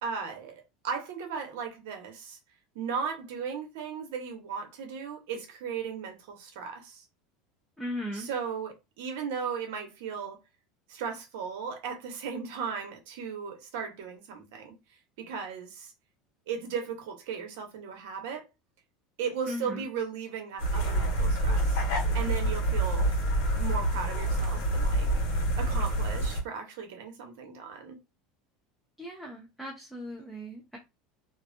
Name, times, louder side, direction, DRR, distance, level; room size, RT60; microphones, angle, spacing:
voice 1, 0.0-2.4 2.7-7.0 8.1-10.4 10.9-14.7 15.2-15.9 16.5-18.5 19.2-21.8 22.1-23.1 23.6-25.1 25.5-28.0, right 6 dB, 80° right, 0.9 m, -36 dB
voice 2, 7.8-8.3 19.4-19.9 29.0-30.8, equal, ahead, 0.6 m, -38 dB
sound 1, 20.6-26.4, right 1 dB, 75° left, 1.3 m, -27 dB
2.6 x 2.3 x 2.5 m
supercardioid pair, 145°, 0 cm